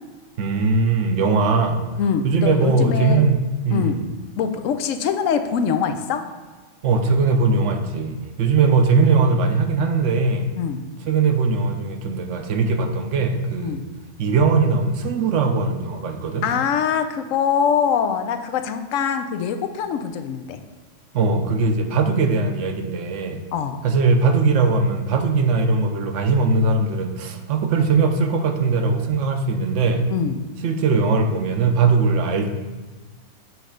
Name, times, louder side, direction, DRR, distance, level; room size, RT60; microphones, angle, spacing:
voice 1, 0.4-1.8 2.2-4.1 6.8-10.5 11.0-13.8 14.2-16.5 21.1-23.4 23.8-30.1 30.6-32.5, right 4 dB, 75° right, 6 dB, 1.0 m, -20 dB
voice 2, 2.0-3.3 3.7-4.1 4.4-6.2 10.5-10.8 13.6-13.8 16.4-20.6 23.5-23.8 30.1-30.5, left 7 dB, 90° left, 8 dB, 1.0 m, -23 dB
7.7 x 3.2 x 5.0 m, 1.3 s
omnidirectional pair, 1.3 m